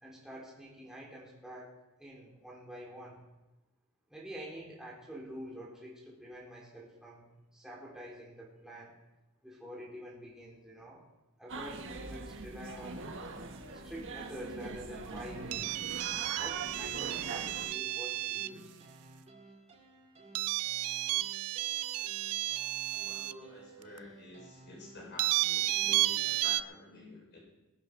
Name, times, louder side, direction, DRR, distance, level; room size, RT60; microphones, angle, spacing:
voice 1, 0.0-3.2 4.1-8.9 9.4-11.0 11.4-13.0 13.7-15.8 16.4-18.8, right 1 dB, ahead, -5 dB, 3.8 m, -47 dB
sound 1, 11.5-17.7, right 3 dB, 60° right, 1.4 m, -42 dB
sound 2, 12.6-26.4, right 2 dB, 30° right, 2.2 m, -56 dB
sound 3, 15.5-18.6 20.4-23.3 24.0-24.1 25.2-26.6, right 16 dB, 85° right, 0.4 m, -32 dB
voice 2, 23.0-27.4, left 1 dB, 55° left, -2 dB, 5.6 m, -49 dB
21.5 x 8.5 x 5.4 m, 1.1 s
head